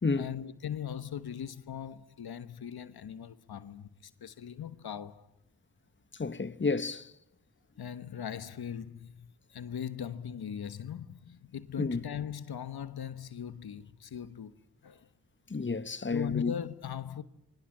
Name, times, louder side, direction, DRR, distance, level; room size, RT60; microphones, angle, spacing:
voice 1, 0.1-5.3 7.8-14.6 14.8-15.1 16.1-17.2, left 9 dB, 90° left, 1.2 m, -39 dB
voice 2, 6.2-7.1 11.8-12.0 15.5-16.5, left 4 dB, 30° left, 1.2 m, -30 dB
26.5 x 24.0 x 8.7 m
cardioid pair, 45°, 37 cm